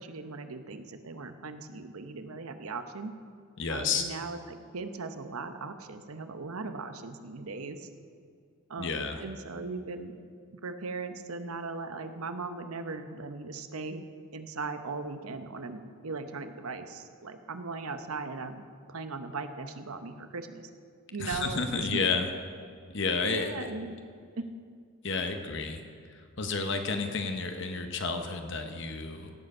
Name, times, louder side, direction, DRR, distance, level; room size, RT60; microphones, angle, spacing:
voice 1, 0.0-3.1 3.7-7.9 8.7-10.2 10.6-14.0 14.3-20.7 21.1-22.0 23.2-24.0 24.4-24.5, right 3 dB, 85° right, 9 dB, 0.9 m, -38 dB
voice 2, 3.6-4.0 8.8-9.2 21.2-22.3 22.9-23.7 25.0-25.8 26.1-29.3, left 4 dB, 55° left, 5 dB, 0.9 m, -31 dB
sound 1, 21.3-23.2 23.6-23.7, right 3 dB, 60° right, 0.5 m, -49 dB
16.5 x 7.8 x 5.5 m, 2.2 s
head